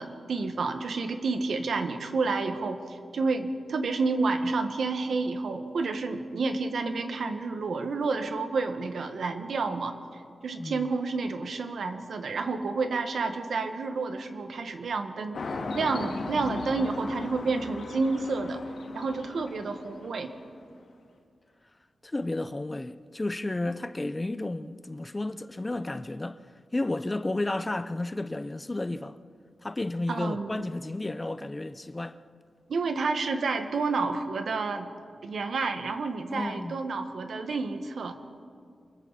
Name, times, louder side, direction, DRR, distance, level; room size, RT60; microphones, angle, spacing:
voice 1, 0.0-18.6 18.9-20.3 30.1-30.6 32.7-34.9 35.2-38.2, right 3 dB, 75° right, 1.6 m, -30 dB
voice 2, 10.6-10.9 22.0-26.4 26.7-29.2 29.6-32.2 36.3-36.8, left 2 dB, 20° left, 0.6 m, -32 dB
sound 1, 15.3-20.5, left 3 dB, 75° left, 2.3 m, -38 dB
28.0 x 22.0 x 4.2 m
wide cardioid pair, 110°, 0 cm